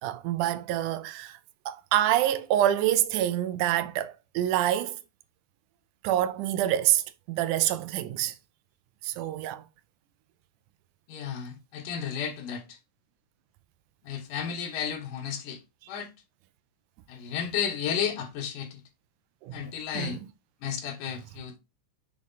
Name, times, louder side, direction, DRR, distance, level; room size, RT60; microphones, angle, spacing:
voice 1, 0.0-1.4 1.7-5.0 6.0-8.3 9.0-9.6 19.4-20.3, right 12 dB, 85° right, 2.1 m, -27 dB
voice 2, 11.1-12.8 14.0-15.6 15.9-16.1 17.1-18.8 19.5-20.2 20.6-21.6, left 8 dB, 85° left, 2.7 m, -33 dB
7.5 x 3.6 x 4.0 m
omnidirectional pair, 3.6 m